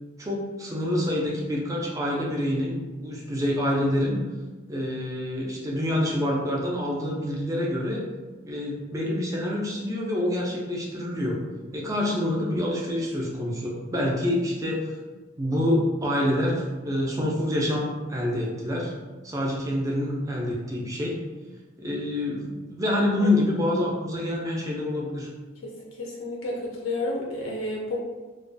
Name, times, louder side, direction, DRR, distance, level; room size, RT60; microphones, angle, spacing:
voice 1, 0.2-4.2 4.7-8.0 8.4-11.4 11.7-14.9 15.4-18.9 19.2-21.2 21.8-25.3, left 1 dB, 15° right, -2 dB, 0.3 m, -27 dB
voice 2, 26.0-28.0, left 2 dB, 75° left, -2 dB, 0.4 m, -31 dB
2.3 x 2.1 x 2.6 m, 1.3 s
head